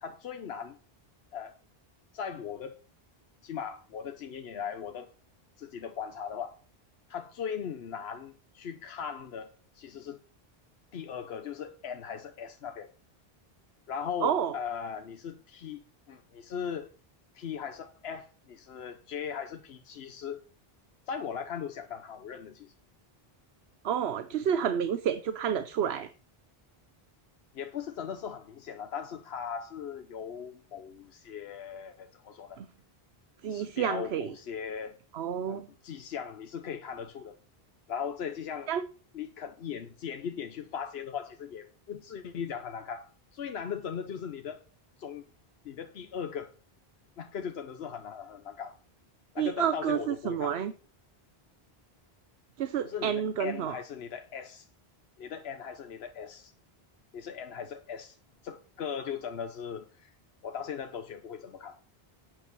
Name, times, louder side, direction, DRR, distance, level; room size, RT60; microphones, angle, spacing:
voice 1, 0.0-0.8 1.3-1.6 2.1-2.8 3.4-5.1 5.6-6.6 7.1-10.2 10.9-12.9 13.9-16.9 17.3-20.4 21.1-22.7 27.5-32.6 33.5-35.0 35.5-37.4 37.9-38.7 39.1-44.6 45.0-45.3 45.6-46.5 47.2-48.8 49.3-50.6 52.8-54.7 55.2-56.5 57.1-58.2 58.4-60.2 60.4-61.8, left 7 dB, 80° left, 1.0 m, -38 dB
voice 2, 14.2-14.5 23.8-26.1 32.6-32.7 33.4-34.3 35.1-35.7 38.7-38.8 49.4-50.7 52.6-53.7, right 8 dB, 85° right, 1.0 m, -29 dB
9.0 x 8.2 x 6.1 m
omnidirectional pair, 1.0 m